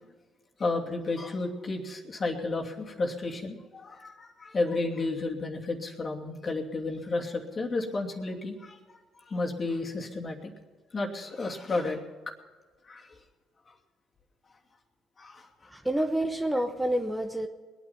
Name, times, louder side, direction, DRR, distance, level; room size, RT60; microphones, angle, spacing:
voice 1, 0.6-9.0 9.3-10.5 10.9-12.0 12.8-13.1 15.2-15.7, left 3 dB, 40° left, 1 dB, 2.7 m, -32 dB
voice 2, 15.7-17.5, right 1 dB, 10° right, 5 dB, 1.2 m, -28 dB
21.0 x 9.3 x 5.8 m, 1.4 s
supercardioid pair, 65°, 0 cm